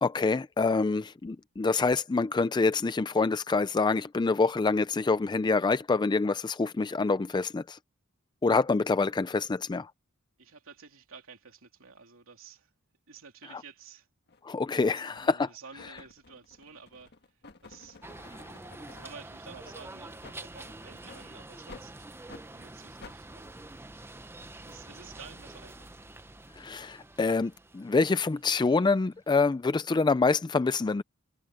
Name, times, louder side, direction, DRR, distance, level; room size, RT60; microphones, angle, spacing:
voice 1, 0.0-7.8 8.4-9.9 14.4-15.5 26.6-31.0, left 4 dB, 20° left, 0.3 m, -26 dB
voice 2, 10.4-12.7 13.1-14.1 14.8-18.0 18.9-22.1 22.5-23.6 24.6-26.0, right 5 dB, 65° right, 3.4 m, -51 dB
sound 1, 14.3-14.4 15.1-15.4 15.8-19.2 19.6-19.8 20.2-20.4 21.0-21.2 21.7-21.9 22.3-22.5 23.0-23.2, left 3 dB, 50° left, 1.5 m, -51 dB
sound 2, 18.0-29.2, right 2 dB, 10° right, 0.8 m, -47 dB
head